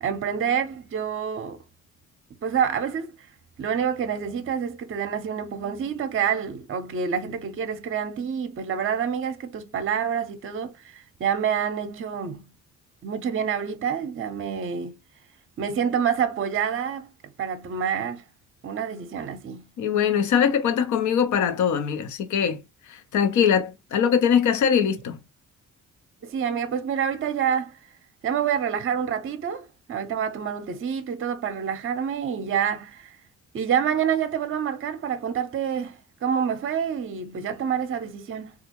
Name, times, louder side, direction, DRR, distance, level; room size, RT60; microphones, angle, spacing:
voice 1, 0.0-1.6 2.4-3.1 3.6-12.4 13.0-14.9 15.6-17.1 17.4-18.2 18.6-19.6 26.2-27.8 28.2-33.2 33.5-38.5, right 7 dB, 45° right, 0.6 m, -27 dB
voice 2, 19.8-22.6 22.9-25.2, left 7 dB, 70° left, 0.8 m, -22 dB
3.5 x 2.4 x 2.9 m
cardioid pair, 90°, 30 cm